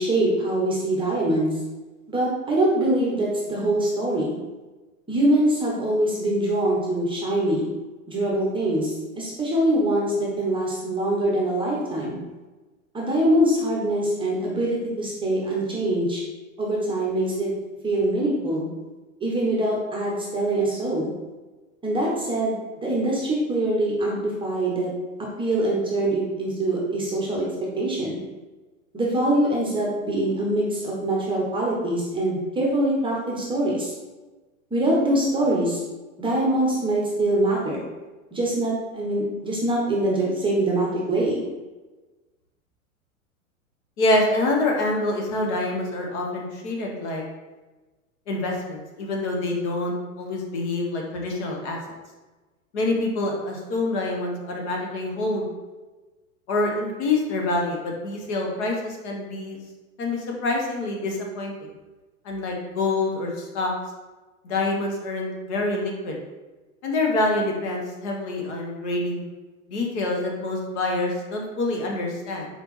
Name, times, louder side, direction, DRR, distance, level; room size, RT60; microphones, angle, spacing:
voice 1, 0.0-1.5 2.1-4.4 5.1-7.7 8.1-12.2 12.9-16.2 16.6-17.5 17.8-18.7 19.2-21.1 21.8-24.9 25.4-27.4 27.8-28.2 28.9-33.9 34.7-35.8 36.2-37.9 38.3-41.4, right 1 dB, 10° right, -4 dB, 0.8 m, -23 dB
voice 2, 44.0-47.2 48.3-51.8 52.7-55.5 56.5-59.6 60.0-61.5 62.2-63.7 64.4-66.2 66.8-69.2 69.7-72.5, left 2 dB, 50° left, 0 dB, 1.1 m, -26 dB
4.2 x 3.4 x 3.1 m, 1.2 s
hypercardioid pair, 110°, 43 cm